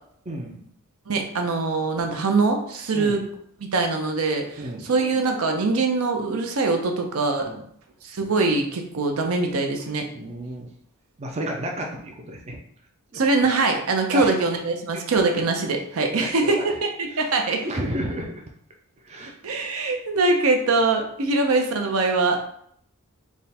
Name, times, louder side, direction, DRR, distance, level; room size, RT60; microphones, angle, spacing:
voice 1, 0.3-0.6 2.9-3.2 4.6-4.9 7.4-7.6 10.1-10.7 11.2-12.6 13.1-13.2 14.1-14.3 14.9-15.0 16.2-16.7 17.1-17.3 17.6-18.4 19.0-19.3, right 1 dB, 30° right, 1 dB, 0.4 m, -31 dB
voice 2, 1.1-3.2 3.6-7.4 8.0-10.1 13.1-17.7 19.4-22.4, right 3 dB, 70° right, 4 dB, 0.6 m, -23 dB
3.5 x 2.1 x 4.1 m, 0.67 s
head